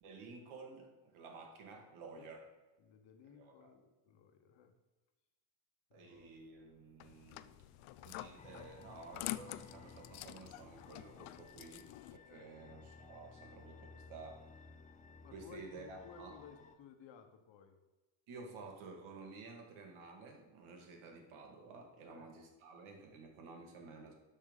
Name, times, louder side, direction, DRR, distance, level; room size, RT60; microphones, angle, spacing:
voice 1, 0.0-2.4 3.3-3.7 5.9-14.5 15.3-16.4 18.3-24.1, right 3 dB, 75° right, 2 dB, 2.4 m, -53 dB
voice 2, 2.8-4.8 5.9-6.3 12.2-12.5 15.2-17.8 22.1-22.3, left 6 dB, 60° left, 7 dB, 1.2 m, -58 dB
sound 1, 6.1-16.2, left 1 dB, 15° right, 1.8 m, -74 dB
sound 2, 7.0-12.2, left 17 dB, 80° left, 0.6 m, -47 dB
sound 3, 8.4-16.8, left 4 dB, 15° left, 0.4 m, -57 dB
12.0 x 4.5 x 5.5 m, 1.2 s
cardioid pair, 145°, 50 cm